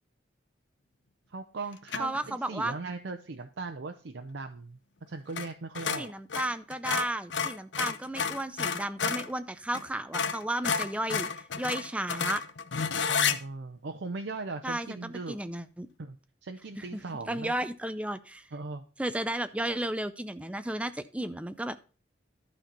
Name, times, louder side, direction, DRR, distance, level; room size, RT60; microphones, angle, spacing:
voice 1, 1.3-4.8 5.1-6.1 13.1-15.4 16.0-16.2 16.4-17.5 18.5-18.8, right 3 dB, 80° right, 5 dB, 0.6 m, -39 dB
sound 1, 1.9-2.2 5.3-5.5 5.7-9.3 9.7-9.8 10.1-13.4, left 6 dB, 80° left, 0.7 m, -30 dB
voice 2, 2.0-2.7 6.0-12.4 14.6-15.9 16.8-17.0 17.3-18.5 19.0-21.8, right 1 dB, 5° right, 11 dB, 0.4 m, -33 dB
12.0 x 4.4 x 5.2 m, 0.37 s
head